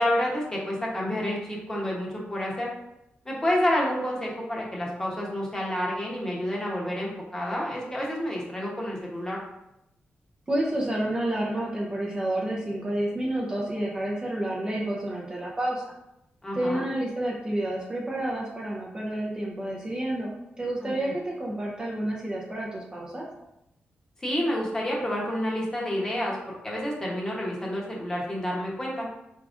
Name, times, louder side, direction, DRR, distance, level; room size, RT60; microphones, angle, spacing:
voice 1, 0.0-2.7 3.2-9.4 16.4-16.9 20.8-21.1 24.2-26.4 26.6-29.1, left 1 dB, 15° left, -4 dB, 0.9 m, -29 dB
voice 2, 10.5-15.9 16.5-20.3 20.6-23.3, right 1 dB, 20° right, -3 dB, 0.6 m, -29 dB
4.5 x 3.6 x 2.5 m, 0.86 s
wide cardioid pair, 160°, 4 cm